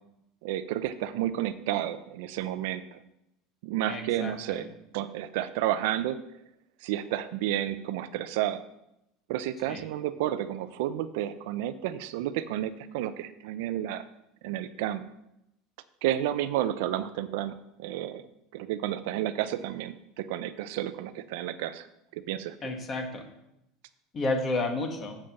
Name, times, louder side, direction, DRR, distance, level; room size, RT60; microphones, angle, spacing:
voice 1, 0.4-3.0 3.6-4.7 4.9-6.2 6.8-8.6 9.3-14.1 14.4-15.0 16.0-18.2 18.5-21.9 22.1-22.6, right 12 dB, 70° right, 12 dB, 0.5 m, -31 dB
voice 2, 3.9-4.7 9.7-9.8 22.6-23.2 24.1-25.2, left 2 dB, 25° left, 4 dB, 1.3 m, -31 dB
7.3 x 5.3 x 6.9 m, 0.84 s
cardioid pair, 165°, 0 cm